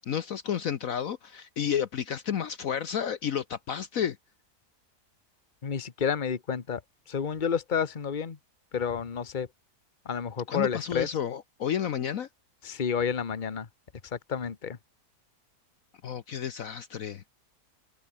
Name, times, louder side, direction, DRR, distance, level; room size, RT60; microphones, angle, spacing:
voice 1, 0.0-4.2 10.5-12.3 16.0-17.2, left 8 dB, 60° left, 1.2 m, -31 dB
voice 2, 5.6-6.8 7.1-8.4 8.7-9.5 10.0-11.1 12.6-13.7 14.1-14.8, left 7 dB, 30° left, 1.3 m, -30 dB
omnidirectional pair, 1.7 m